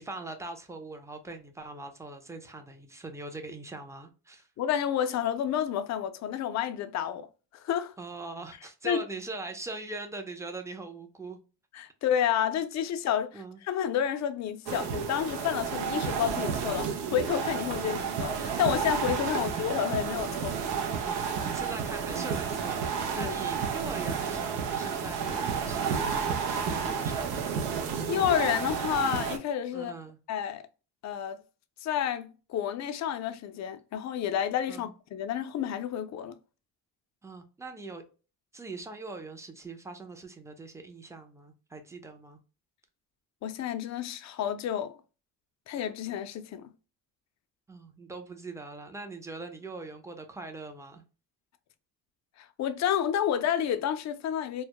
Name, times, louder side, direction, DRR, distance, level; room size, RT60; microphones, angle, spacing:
voice 1, 0.0-4.5 8.0-11.4 13.3-13.6 19.3-19.6 21.0-27.6 29.7-30.2 34.7-34.9 37.2-38.0 38.5-42.4 47.7-51.0, right 3 dB, 10° right, 0.5 m, -42 dB
voice 2, 4.6-7.3 7.5-7.9 8.8-9.0 11.7-20.6 23.1-23.4 28.0-29.9 30.3-30.6 31.0-31.4 31.8-36.3 43.4-45.0 45.7-46.7 52.4-54.6, left 9 dB, 45° left, 0.4 m, -30 dB
sound 1, 14.7-29.4, right 6 dB, 85° right, 0.6 m, -31 dB
2.2 x 2.0 x 2.8 m
cardioid pair, 85°, 39 cm